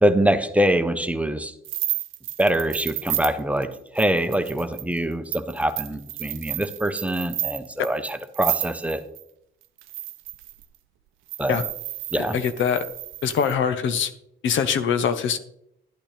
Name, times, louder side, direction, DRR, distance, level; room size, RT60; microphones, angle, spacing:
voice 1, 0.0-1.5 2.4-3.7 3.9-9.0 11.4-11.6 12.1-12.4, right 1 dB, 5° right, 8 dB, 0.9 m, -24 dB
sound 1, 1.6-9.2 9.8-10.6 11.3-13.5, right 15 dB, 85° right, 0.5 m, -32 dB
voice 2, 12.2-12.8 13.2-14.1 14.4-15.4, left 7 dB, 75° left, 10 dB, 0.9 m, -23 dB
12.5 x 8.8 x 3.4 m, 0.74 s
cardioid pair, 90°, 20 cm